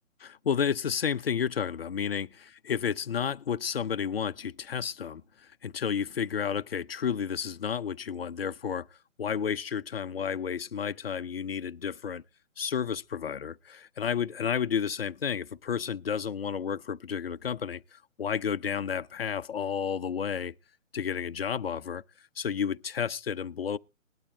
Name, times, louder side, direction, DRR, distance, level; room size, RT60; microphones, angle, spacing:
voice 1, 0.2-2.3 2.6-5.2 5.6-8.9 9.2-12.2 12.6-20.5 20.9-22.0 22.4-23.8, left 7 dB, 50° left, 0.6 m, -31 dB
20.5 x 12.0 x 2.3 m
hypercardioid pair, 165°, 40 cm